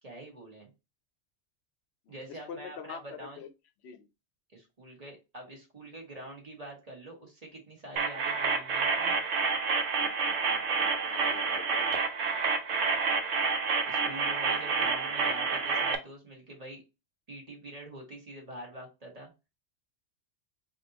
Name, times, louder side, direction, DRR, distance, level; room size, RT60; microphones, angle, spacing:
voice 1, 0.0-0.7 2.1-3.4 4.5-9.2 13.8-16.8 17.3-19.3, right 1 dB, 35° right, 1.3 m, -45 dB
voice 2, 2.1-3.5 3.8-4.1 11.1-11.8, left 6 dB, 70° left, 0.8 m, -44 dB
sound 1, 8.0-16.0, right 5 dB, 85° right, 1.0 m, -29 dB
3.4 x 2.6 x 3.9 m
omnidirectional pair, 1.2 m